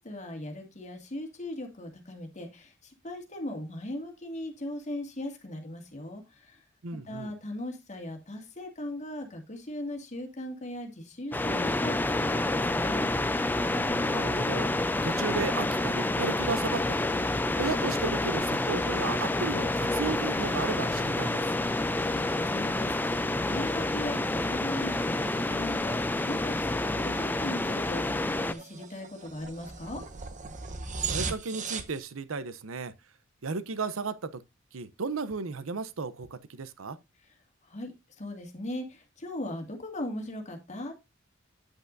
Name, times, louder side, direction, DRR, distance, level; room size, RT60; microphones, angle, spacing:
voice 1, 0.0-6.6 7.0-13.1 21.8-30.0 37.6-40.9, left 1 dB, 35° left, 2.1 m, -39 dB
voice 2, 6.8-7.3 13.7-21.4 31.0-32.9 33.4-34.4 34.7-37.0, right 4 dB, 80° right, 0.7 m, -34 dB
sound 1, 11.3-28.5, left 2 dB, 10° left, 0.4 m, -28 dB
sound 2, 15.7-32.0, right 5 dB, 40° right, 0.9 m, -43 dB
8.9 x 8.2 x 2.6 m
head